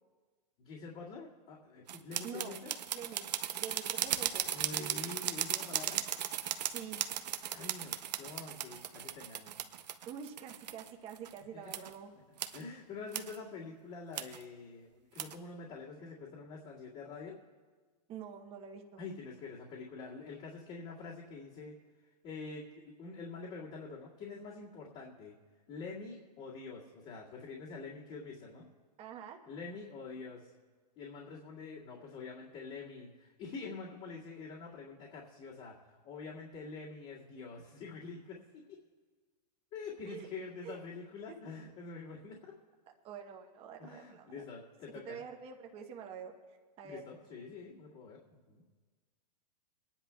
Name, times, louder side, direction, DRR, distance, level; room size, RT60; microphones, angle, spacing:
voice 1, 0.6-2.7 4.5-6.0 7.5-9.6 11.5-11.9 12.5-17.4 19.0-21.8 22.2-25.3 25.7-28.7 29.5-30.5 31.0-38.6 39.7-42.4 43.8-45.2 46.8-48.2 48.5-48.6, left 4 dB, 40° left, -8 dB, 2.1 m, -46 dB
sound 1, 1.9-11.4 11.7-11.9 12.4-12.6 13.1-13.4 14.1-14.4 15.2-15.3, right 10 dB, 80° right, 0.7 m, -37 dB
voice 2, 2.2-2.6 2.9-3.3 3.6-4.4 6.6-7.0 10.1-12.1 18.1-19.0 29.0-29.4 40.1-40.3 40.6-40.8 43.0-44.5 45.1-46.3 46.8-47.0, right 7 dB, 25° right, 3 dB, 1.0 m, -46 dB
29.0 x 10.0 x 2.3 m, 1.4 s
hypercardioid pair, 135°, 21 cm